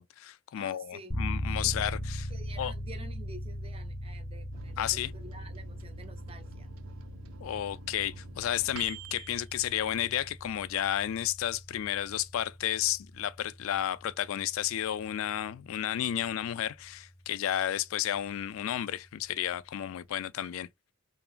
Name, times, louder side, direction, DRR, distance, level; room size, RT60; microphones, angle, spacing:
voice 1, 0.0-2.3 2.6-2.7 4.8-5.1 7.4-20.7, left 11 dB, 80° left, 0.3 m, -32 dB
voice 2, 0.6-1.1 2.3-6.7, right 2 dB, 30° right, 0.6 m, -49 dB
sound 1, 1.1-17.8, equal, 20° left, 0.6 m, -40 dB
Microwave oven, 4.5-10.6 11.0-11.1 11.4-12.0, right 7 dB, 90° right, 0.4 m, -50 dB
2.9 x 2.4 x 2.3 m
head